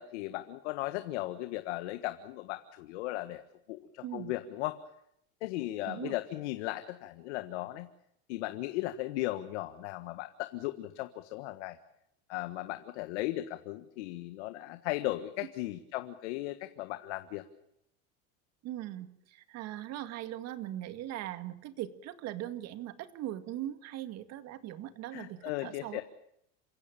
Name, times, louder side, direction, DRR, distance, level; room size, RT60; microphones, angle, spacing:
voice 1, 0.0-3.4 3.7-4.8 5.4-7.9 8.3-11.8 12.3-17.4 25.1-26.0, left 16 dB, 85° left, 9 dB, 1.6 m, -36 dB
voice 2, 4.0-4.3 5.9-6.2 18.6-26.0, right 13 dB, 50° right, 10 dB, 2.0 m, -40 dB
28.0 x 16.0 x 8.8 m, 0.76 s
supercardioid pair, 140°, 34 cm